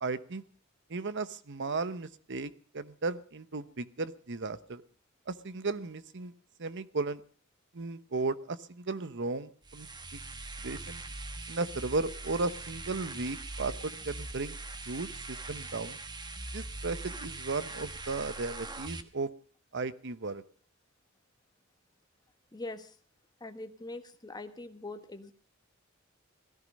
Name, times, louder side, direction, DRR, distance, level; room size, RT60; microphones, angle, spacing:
voice 1, 0.0-0.4 0.9-4.8 5.3-6.3 6.6-7.2 7.7-9.9 10.6-11.0 11.5-14.6 14.9-16.0 16.5-19.3 19.7-20.4, right 3 dB, 60° right, 14 dB, 1.0 m, -35 dB
sound 1, 9.6-19.0, right 2 dB, 20° right, 1.2 m, -42 dB
voice 2, 22.5-22.9 23.4-25.3, left 2 dB, 20° left, 7 dB, 1.4 m, -42 dB
17.5 x 14.5 x 5.3 m, 0.42 s
head